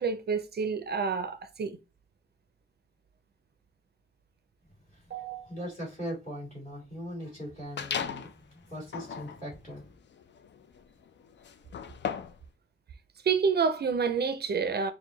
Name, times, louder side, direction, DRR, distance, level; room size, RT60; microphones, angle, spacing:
voice 1, 0.0-1.8 5.1-5.5 13.2-14.9, right 5 dB, 55° right, 0.4 m, -28 dB
voice 2, 5.4-9.9, equal, 40° left, 2.5 m, -40 dB
sound 1, 7.8-8.4 8.8-12.5, left 7 dB, 65° left, 0.4 m, -37 dB
4.6 x 2.1 x 3.7 m
wide cardioid pair, 180°, 20 cm